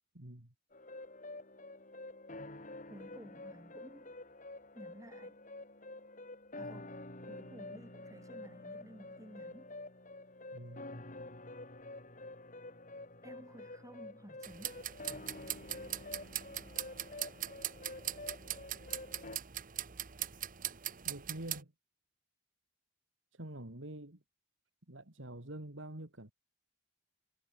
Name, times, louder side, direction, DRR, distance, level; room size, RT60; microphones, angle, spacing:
voice 1, 0.1-0.5 10.5-10.8 21.0-21.7 23.3-24.2 24.9-26.3, right 1 dB, 80° right, 3.0 m, -46 dB
sound 1, 0.7-19.4, left 2 dB, 40° left, 6.3 m, -48 dB
voice 2, 2.9-4.2 4.7-5.4 6.6-9.8 13.2-14.8, equal, 15° right, 7.8 m, -54 dB
sound 2, 14.4-21.6, right 12 dB, 45° right, 1.1 m, -41 dB
head